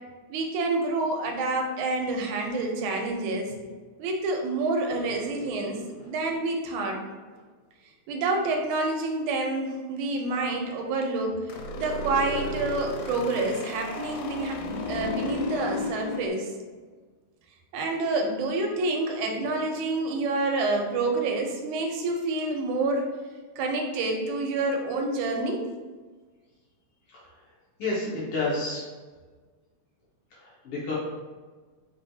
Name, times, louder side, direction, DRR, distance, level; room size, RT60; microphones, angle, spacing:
voice 1, 0.3-3.6 4.0-7.0 8.1-16.5 17.7-23.1 23.6-25.6, right 2 dB, 90° right, 2 dB, 2.2 m, -28 dB
sound 1, 4.9-6.5 11.5-16.3, left 3 dB, 85° left, 2.0 m, -34 dB
voice 2, 27.8-28.9 30.3-30.9, left 2 dB, 60° left, -6 dB, 1.7 m, -30 dB
4.3 x 4.2 x 2.7 m, 1.4 s
omnidirectional pair, 3.4 m